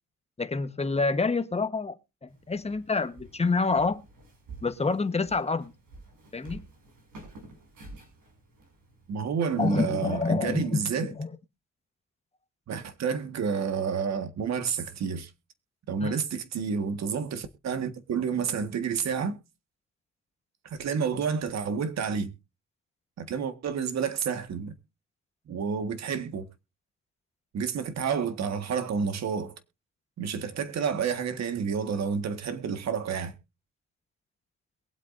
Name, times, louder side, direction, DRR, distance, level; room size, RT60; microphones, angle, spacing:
voice 1, 0.4-1.9 2.2-4.0 4.6-5.7 6.3-6.6 9.6-11.3 16.0-16.2, left 4 dB, 20° left, 1.2 m, -27 dB
Walk footsteps, 2.3-10.4, right 2 dB, 85° right, 6.0 m, -50 dB
voice 2, 9.1-11.1 12.7-15.3 15.9-19.4 20.7-22.3 23.2-24.7 25.5-26.5 27.5-29.5 30.2-33.3, right 6 dB, 60° right, 1.6 m, -29 dB
22.0 x 8.1 x 2.6 m
cardioid pair, 90°, 30 cm